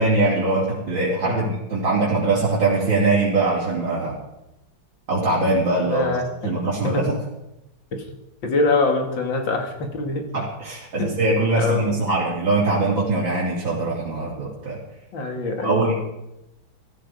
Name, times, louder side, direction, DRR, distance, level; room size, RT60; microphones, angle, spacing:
voice 1, 0.0-4.1 5.1-6.1 6.4-7.2 10.3-14.8 15.6-15.9, right 2 dB, 60° right, -7 dB, 4.1 m, -22 dB
voice 2, 5.8-6.5 6.9-7.0 8.4-10.3 11.0-11.1 11.5-12.0 15.1-15.8, left 3 dB, 60° left, 4 dB, 2.7 m, -24 dB
15.5 x 14.5 x 5.0 m, 0.90 s
omnidirectional pair, 2.4 m